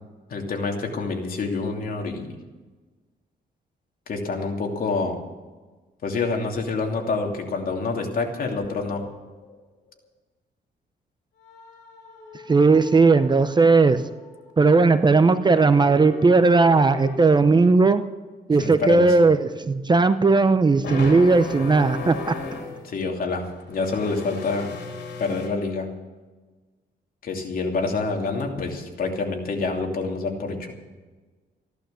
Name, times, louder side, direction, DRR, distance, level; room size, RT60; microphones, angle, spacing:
voice 1, 0.3-2.4 4.1-5.2 6.0-9.0 18.6-19.2 22.8-24.7 25.2-25.9 27.2-30.7, left 3 dB, 55° left, 2 dB, 2.9 m, -27 dB
sound 1, 6.6-7.1 7.4-7.6 8.6-9.6 11.4-14.5 15.5-17.4 20.8-22.8 23.1-25.5, left 3 dB, 80° left, 3.6 m, -38 dB
voice 2, 12.5-14.0 14.6-18.0 18.5-22.4, right 3 dB, 25° right, 11 dB, 0.7 m, -17 dB
15.0 x 11.5 x 7.0 m, 1.3 s
cardioid pair, 110°, 18 cm